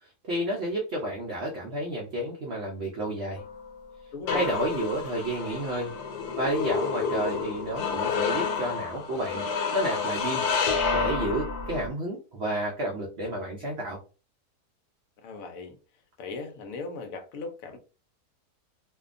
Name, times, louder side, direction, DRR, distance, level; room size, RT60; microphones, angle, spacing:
voice 1, 0.0-3.4 4.3-5.9 6.4-9.5 9.7-14.0, right 1 dB, 65° right, 0.6 m, -31 dB
sound 1, 3.4-11.9, left 5 dB, 90° left, 1.2 m, -30 dB
voice 2, 4.1-4.5 15.2-15.8 16.2-17.8, left 4 dB, 70° left, 0.9 m, -37 dB
2.7 x 2.2 x 2.4 m
omnidirectional pair, 1.7 m